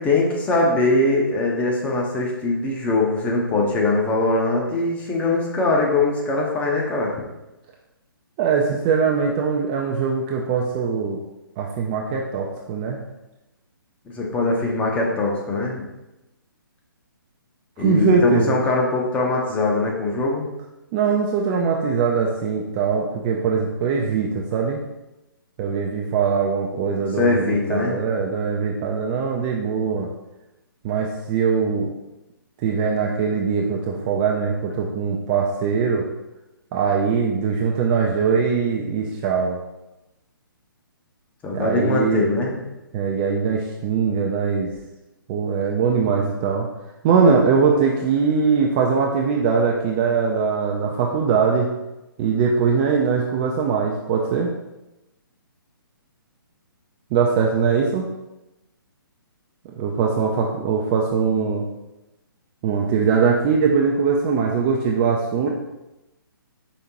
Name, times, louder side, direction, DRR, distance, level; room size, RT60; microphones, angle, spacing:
voice 1, 0.0-7.1 14.1-15.8 17.8-20.5 27.0-28.0 41.4-42.6, left 2 dB, 10° left, -2 dB, 0.7 m, -22 dB
voice 2, 8.4-11.2 11.6-13.0 17.8-18.6 20.9-24.8 25.6-30.1 30.8-31.9 32.6-36.0 36.7-39.6 41.5-42.3 42.9-44.7 45.3-46.7 47.0-51.7 52.2-54.5 57.1-58.1 59.8-61.7 62.6-65.5, right 5 dB, 25° right, -1 dB, 0.4 m, -21 dB
5.1 x 3.5 x 2.9 m, 0.98 s
figure-of-eight pair, 135°, 12 cm